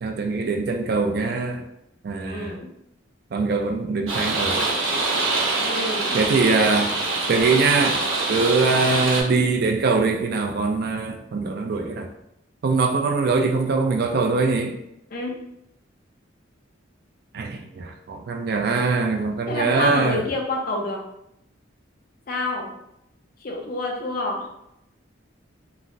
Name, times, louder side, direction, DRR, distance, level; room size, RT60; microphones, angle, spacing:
voice 1, 0.0-1.6 2.0-2.6 3.3-4.6 6.1-6.9 7.3-8.0 8.3-12.1 12.6-14.8 17.3-20.2, right 4 dB, 50° right, 4 dB, 0.3 m, -22 dB
voice 2, 2.2-2.7 5.7-6.2 15.1-15.4 19.5-21.0 22.3-22.7 23.4-24.4, left 2 dB, 45° left, 0 dB, 0.5 m, -27 dB
sound 1, 4.1-9.2, right 2 dB, 90° right, 0.7 m, -24 dB
3.1 x 2.0 x 2.5 m, 0.81 s
head